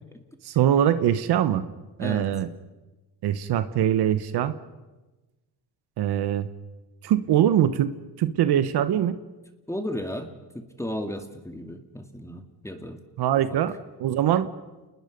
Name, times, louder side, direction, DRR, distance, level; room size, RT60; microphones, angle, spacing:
voice 1, 0.4-1.6 2.0-2.5 3.2-4.6 6.0-6.5 7.0-7.9 8.2-9.2 13.2-13.7 14.0-14.5, right 10 dB, 65° right, 12 dB, 1.2 m, -22 dB
voice 2, 2.0-2.3 9.7-10.3 10.5-13.0 13.5-13.6, left 1 dB, 5° left, 5 dB, 2.1 m, -34 dB
28.5 x 20.5 x 5.3 m, 1.2 s
supercardioid pair, 80°, 42 cm